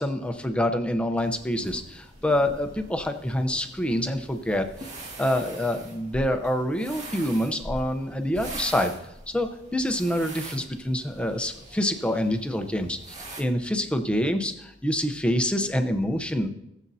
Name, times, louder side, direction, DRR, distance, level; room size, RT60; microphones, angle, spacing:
voice 1, 0.0-4.9 5.2-8.9 9.3-16.5, left 1 dB, 5° left, 6 dB, 0.7 m, -26 dB
sound 1, 1.2-13.4, right 1 dB, 35° right, 1.6 m, -42 dB
19.5 x 7.3 x 2.7 m, 0.87 s
head